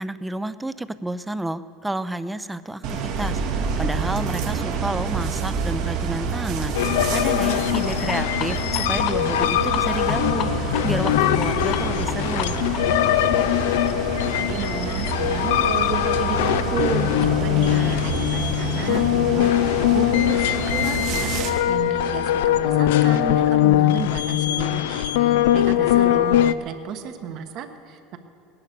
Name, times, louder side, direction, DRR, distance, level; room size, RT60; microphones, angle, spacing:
voice 1, 0.0-2.8 3.2-3.4 3.8-6.7 7.1-12.6 17.7-17.9 25.3-25.5, right 1 dB, 5° right, 14 dB, 0.5 m, -30 dB
sound 1, 2.8-21.5, right 6 dB, 75° right, 2.0 m, -28 dB
sound 2, 6.7-26.5, left 13 dB, 90° left, 0.4 m, -21 dB
sound 3, 7.7-13.1, left 10 dB, 55° left, 0.8 m, -35 dB
voice 2, 14.4-19.5 19.9-28.2, right 7 dB, 55° right, 7 dB, 1.3 m, -32 dB
18.5 x 11.0 x 6.8 m, 2.7 s
supercardioid pair, 120°, 0 cm